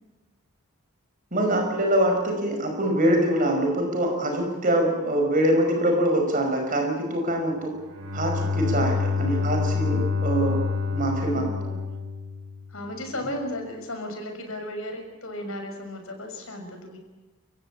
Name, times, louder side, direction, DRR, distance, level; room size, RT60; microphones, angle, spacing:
voice 1, 1.3-7.7 8.1-10.6 10.9-11.4 13.2-13.3, right 1 dB, 40° right, 3 dB, 5.2 m, -24 dB
Bowed string instrument, 7.8-12.7, left 4 dB, 85° right, 7.5 m, -27 dB
voice 2, 11.3-11.8 12.7-17.0, left 1 dB, 65° left, 4 dB, 6.3 m, -35 dB
28.5 x 16.0 x 8.8 m, 1.2 s
head